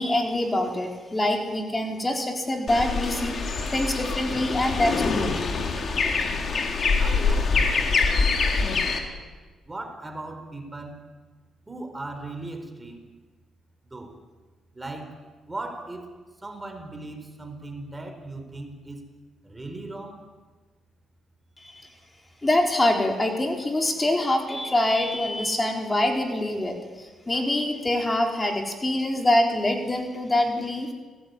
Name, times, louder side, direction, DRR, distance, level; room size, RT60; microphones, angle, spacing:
voice 1, 0.0-3.4 3.7-5.4 21.6-21.8 22.4-30.9, left 1 dB, 20° left, 2 dB, 4.4 m, -25 dB
sound 1, 2.7-9.0, left 4 dB, 45° left, 4.5 m, -24 dB
voice 2, 7.0-8.2 9.7-11.0 11.7-13.2 13.9-14.2 14.7-15.2 15.5-19.1 19.4-20.2, right 2 dB, 15° right, 7 dB, 4.4 m, -38 dB
28.5 x 19.0 x 9.8 m, 1.3 s
cardioid pair, 90°, 0 cm